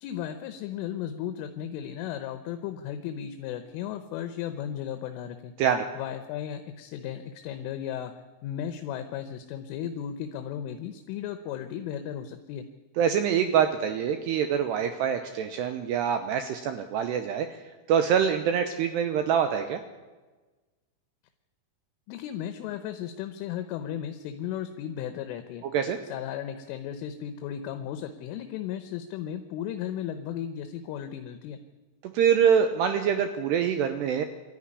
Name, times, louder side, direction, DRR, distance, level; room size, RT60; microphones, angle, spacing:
voice 1, 0.0-5.5 5.9-8.1 8.4-12.7 22.1-25.6 26.1-31.6, left 10 dB, 80° left, 8 dB, 3.4 m, -35 dB
voice 2, 13.0-19.8 25.6-26.0 32.0-34.3, right 8 dB, 80° right, 8 dB, 2.6 m, -25 dB
23.0 x 13.5 x 9.9 m, 1.3 s
omnidirectional pair, 5.7 m